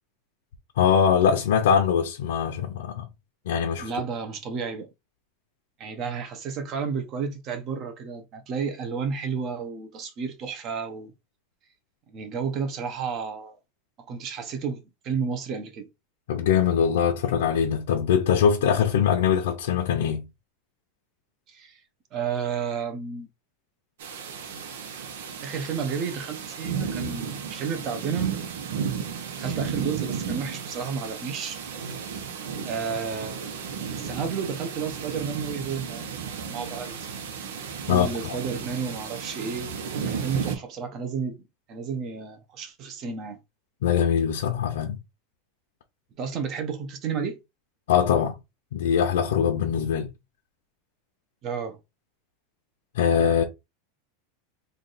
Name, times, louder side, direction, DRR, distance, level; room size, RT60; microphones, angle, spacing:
voice 1, 0.8-3.0 3.5-3.9 16.3-20.3 37.9-38.4 43.8-45.0 47.9-48.3 48.7-50.1 52.9-53.4, left 8 dB, 85° left, 0.8 m, -22 dB
voice 2, 3.8-4.9 5.8-11.1 12.1-13.6 14.1-15.9 21.5-21.8 22.1-23.3 25.4-28.4 29.4-31.6 32.6-33.5 34.0-36.1 36.4-37.0 37.9-39.7 40.1-41.4 41.7-43.4 46.2-47.4 51.4-51.8, right 6 dB, 30° right, 0.8 m, -31 dB
sound 1, 24.0-40.5, right 7 dB, 90° right, 0.9 m, -34 dB
3.3 x 2.5 x 4.0 m
supercardioid pair, 170°, 0 cm